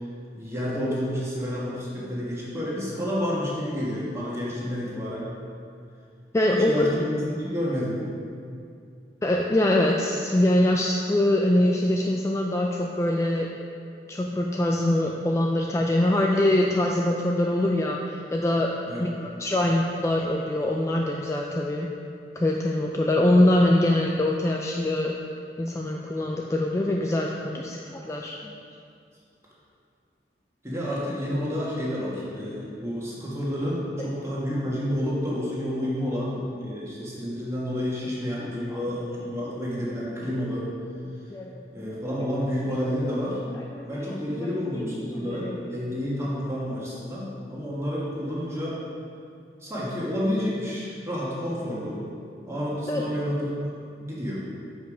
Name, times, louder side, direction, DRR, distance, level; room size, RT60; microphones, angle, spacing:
voice 1, 0.3-5.3 6.5-8.0 18.9-19.1 30.6-40.7 41.7-43.4 43.9-48.8 49.6-52.0 52.5-54.4, equal, 15° right, -6 dB, 1.5 m, -30 dB
voice 2, 6.3-6.9 9.2-13.5 14.1-21.9 22.4-25.2 25.6-28.5 38.4-38.8 41.3-41.6 43.5-44.1 44.4-44.5 44.7-45.6 52.9-53.0, left 1 dB, 15° left, -1 dB, 0.3 m, -24 dB
6.8 x 5.3 x 5.1 m, 2.4 s
head